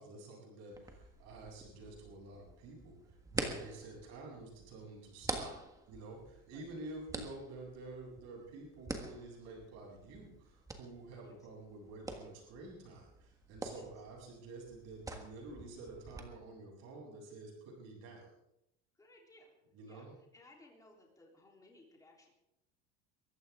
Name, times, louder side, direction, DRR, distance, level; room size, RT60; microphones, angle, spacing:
voice 1, 0.0-5.6 5.9-18.4 19.7-20.1, right 2 dB, 55° right, -2 dB, 8.0 m, -50 dB
sound 1, 0.7-16.2, right 2 dB, 10° right, 1.5 m, -46 dB
voice 2, 19.0-19.5 19.9-22.3, left 2 dB, 10° left, -1 dB, 3.5 m, -61 dB
23.0 x 15.0 x 3.7 m, 0.85 s
cardioid pair, 150°, 32 cm